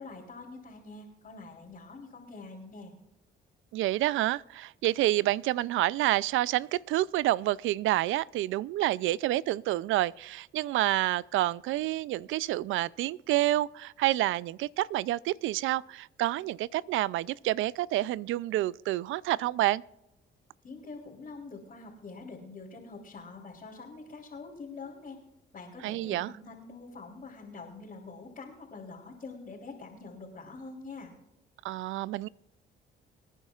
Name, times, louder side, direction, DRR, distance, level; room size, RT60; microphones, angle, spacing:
voice 1, 0.0-2.9 20.6-25.2 25.5-31.1, left 3 dB, 45° left, 3.4 m, -45 dB
voice 2, 3.7-19.8 25.8-26.3 31.6-32.3, right 15 dB, 80° right, 0.4 m, -28 dB
25.5 x 10.0 x 2.4 m
cardioid pair, 90°, 20 cm